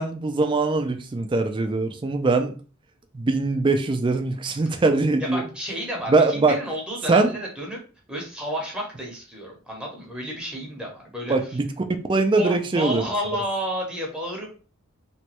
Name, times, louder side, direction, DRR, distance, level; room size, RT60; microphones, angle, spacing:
voice 1, 0.0-2.5 3.1-5.4 6.1-6.6 7.1-7.3 11.3-11.7 12.1-13.0, right 3 dB, 20° right, 6 dB, 0.3 m, -22 dB
voice 2, 5.2-7.8 8.1-11.3 12.4-14.6, equal, 5° right, -2 dB, 0.8 m, -31 dB
3.0 x 2.2 x 2.9 m, 0.37 s
head